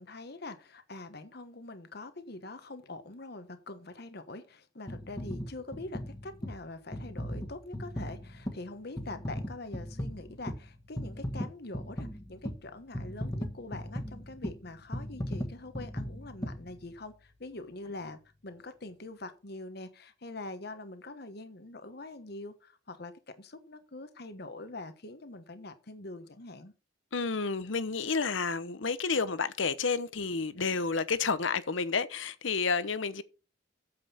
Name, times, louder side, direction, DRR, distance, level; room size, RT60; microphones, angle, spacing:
voice 1, 0.0-26.7, left 2 dB, 55° left, 1.2 m, -44 dB
sound 1, 4.9-17.3 17.8-18.0, equal, 20° left, 1.5 m, -39 dB
voice 2, 27.1-33.2, left 4 dB, 75° left, 1.0 m, -30 dB
8.9 x 7.7 x 5.8 m
head